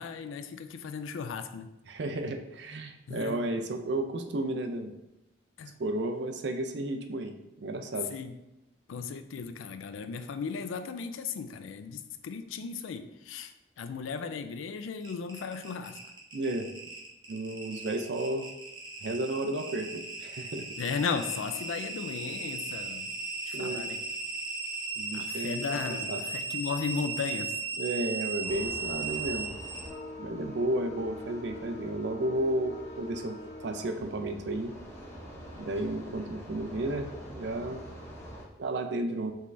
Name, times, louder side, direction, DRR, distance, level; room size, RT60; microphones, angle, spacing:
voice 1, 0.0-1.7 3.1-3.4 5.6-5.7 8.1-8.3 8.9-16.0 20.8-23.1 23.5-24.0 25.1-27.6, left 5 dB, 80° left, 9 dB, 0.4 m, -36 dB
voice 2, 1.9-4.9 5.8-8.1 16.3-16.7 17.3-18.5 19.0-20.7 23.5-23.9 25.0-26.2 27.8-29.5 30.2-33.4 33.6-34.7 35.6-37.8 38.6-39.3, right 1 dB, 60° right, 6 dB, 0.4 m, -33 dB
sound 1, 15.0-29.9, right 4 dB, 25° right, 0.7 m, -37 dB
sound 2, 28.4-38.4, left 1 dB, 15° left, 0.7 m, -44 dB
5.3 x 3.2 x 2.6 m, 0.91 s
head